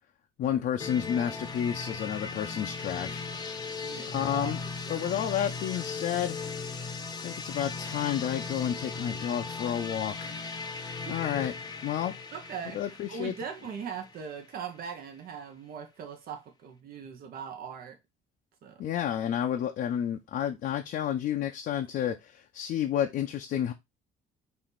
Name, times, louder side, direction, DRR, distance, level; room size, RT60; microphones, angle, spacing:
voice 1, 0.4-3.2 3.5-3.6 4.1-4.6 4.9-6.5 7.2-10.3 11.1-11.5 11.8-12.1 12.7-13.3 18.8-23.7, left 10 dB, 60° left, 0.6 m, -30 dB
sound 1, 0.8-14.5, left 4 dB, 25° left, 0.8 m, -38 dB
voice 2, 3.8-5.2 11.0-11.2 12.3-18.0 18.6-18.8, right 7 dB, 60° right, 1.2 m, -40 dB
4.4 x 2.7 x 4.0 m
cardioid pair, 110°, 17 cm